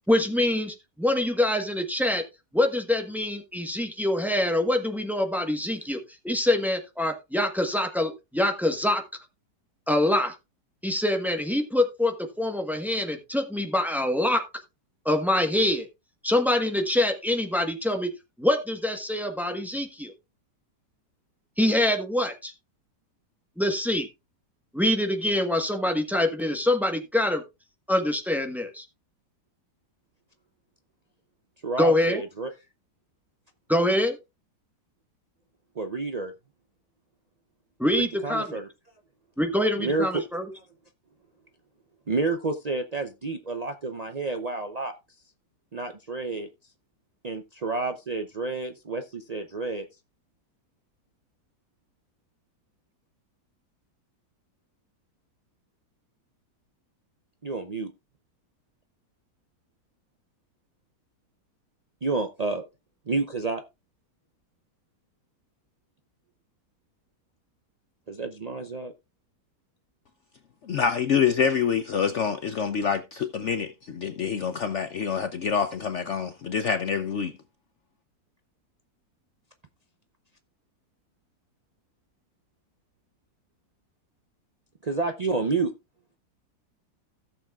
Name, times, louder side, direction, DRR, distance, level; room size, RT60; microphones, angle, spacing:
voice 1, 0.1-2.2 2.5-9.0 9.9-10.3 10.8-14.4 15.0-15.9 16.2-18.1 18.4-20.1 21.6-22.5 23.6-24.1 24.7-27.4 27.9-28.8 31.8-32.2 33.7-34.2 37.8-38.6 39.4-40.5, left 1 dB, ahead, 0.9 m, -25 dB
voice 2, 31.6-32.5 35.8-36.3 38.0-38.7 39.8-40.2 42.1-44.9 45.7-46.5 47.2-49.9 57.4-57.9 62.0-62.6 63.1-63.6 68.1-68.9 84.8-85.7, right 3 dB, 90° right, 0.3 m, -29 dB
voice 3, 70.7-77.3, left 7 dB, 60° left, 0.7 m, -26 dB
16.5 x 7.0 x 2.4 m
omnidirectional pair, 1.9 m